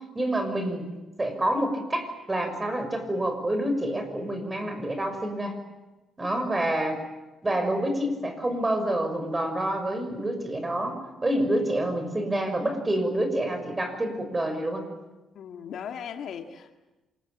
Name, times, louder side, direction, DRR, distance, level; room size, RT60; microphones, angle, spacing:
voice 1, 0.1-0.9 1.2-5.6 6.2-7.0 7.4-14.8, right 1 dB, 20° right, 7 dB, 6.1 m, -27 dB
voice 2, 15.4-16.8, left 8 dB, 70° left, 5 dB, 2.2 m, -38 dB
27.5 x 20.5 x 8.8 m, 1.1 s
cardioid pair, 90°, 0 cm